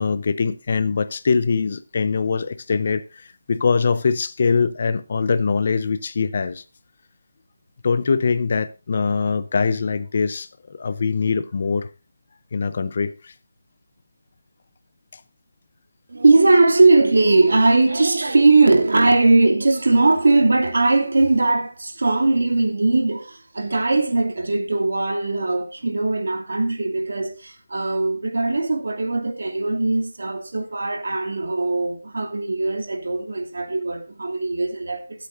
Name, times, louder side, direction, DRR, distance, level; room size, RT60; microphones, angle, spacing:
voice 1, 0.0-6.6 7.8-11.9 12.5-13.3 15.1-15.2, left 5 dB, 30° left, 0.6 m, -22 dB
voice 2, 16.1-35.3, right 3 dB, 70° right, 2.6 m, -19 dB
21.0 x 8.2 x 2.6 m
figure-of-eight pair, 180°, 0 cm